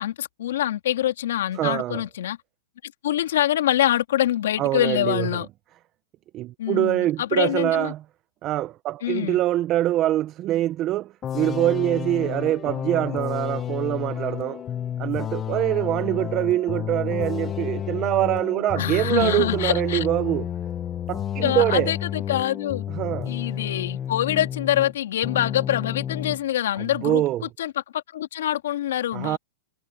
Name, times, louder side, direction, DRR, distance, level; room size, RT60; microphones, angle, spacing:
voice 1, 0.0-2.4 2.8-5.5 6.6-7.9 9.0-9.4 18.8-20.1 21.4-22.8 23.3-27.2 27.6-29.4, left 12 dB, 75° left, 2.3 m, -25 dB
voice 2, 1.6-2.0 4.6-5.4 6.3-8.0 8.4-14.6 15.0-20.5 21.1-21.9 22.9-23.3 27.0-27.5 29.1-29.4, right 14 dB, 30° right, 0.6 m, -24 dB
sound 1, 11.2-25.0 25.2-26.4, left 10 dB, 20° left, 1.0 m, -31 dB
hypercardioid pair, 150°, 0 cm